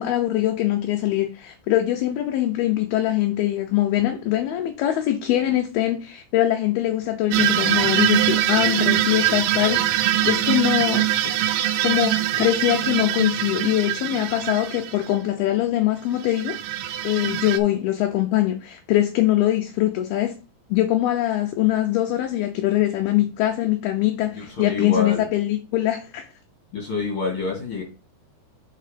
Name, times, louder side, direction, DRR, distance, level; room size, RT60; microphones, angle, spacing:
voice 1, 0.0-11.1 11.8-16.6 17.0-20.3 20.7-26.3, left 14 dB, 75° left, 2.4 m, -22 dB
sound 1, 7.3-15.1 16.2-17.6, right 13 dB, 80° right, 2.5 m, -23 dB
voice 2, 24.4-25.3 26.7-27.8, left 4 dB, 45° left, 2.0 m, -27 dB
5.7 x 4.6 x 5.1 m
omnidirectional pair, 5.0 m